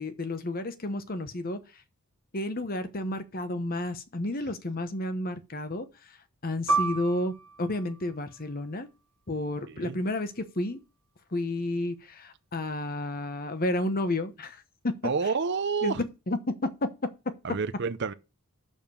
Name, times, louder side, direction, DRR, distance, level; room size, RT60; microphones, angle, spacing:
voice 1, 0.0-1.6 2.3-5.9 6.4-8.9 9.3-10.8 11.3-15.1 15.8-16.4 16.8-16.9, left 1 dB, 40° left, 0.9 m, -31 dB
Piano, 6.7-11.7 12.1-12.2 13.0-13.4, right 3 dB, 70° right, 1.2 m, -34 dB
voice 2, 9.7-10.0 15.0-16.0 17.4-18.1, right 5 dB, 50° right, 0.6 m, -29 dB
6.6 x 5.5 x 6.9 m
head